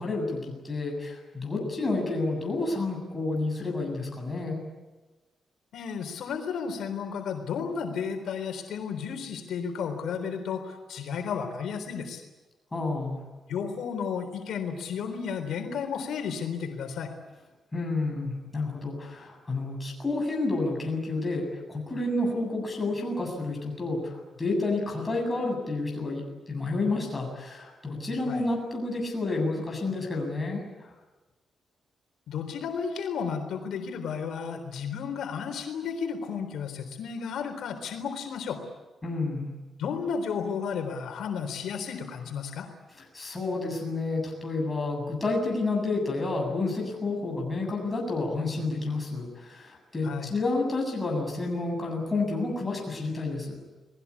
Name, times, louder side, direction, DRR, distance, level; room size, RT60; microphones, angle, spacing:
voice 1, 0.0-4.6 12.7-13.2 17.7-30.9 39.0-39.5 43.1-53.6, left 2 dB, 15° left, 0 dB, 7.7 m, -30 dB
voice 2, 5.7-12.2 13.5-17.1 28.3-28.4 32.3-38.6 39.8-42.7 50.0-50.3, left 6 dB, 80° left, 4 dB, 3.8 m, -33 dB
29.5 x 20.0 x 8.5 m, 1.2 s
wide cardioid pair, 165°, 0 cm